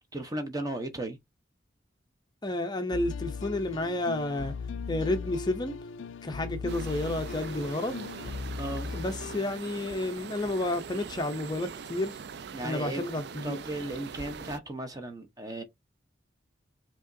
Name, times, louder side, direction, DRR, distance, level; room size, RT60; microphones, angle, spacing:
voice 1, 0.1-1.2 8.6-8.9 12.5-13.0 13.4-15.6, right 1 dB, 20° right, 0.8 m, -35 dB
voice 2, 2.4-4.5 4.9-5.8 6.2-8.1 8.9-12.2 12.6-13.6, left 1 dB, 20° left, 0.5 m, -31 dB
sound 1, 2.9-9.4, left 5 dB, 80° left, 0.4 m, -38 dB
sound 2, 6.7-14.6, right 6 dB, 55° right, 0.3 m, -42 dB
4.9 x 2.9 x 2.6 m
head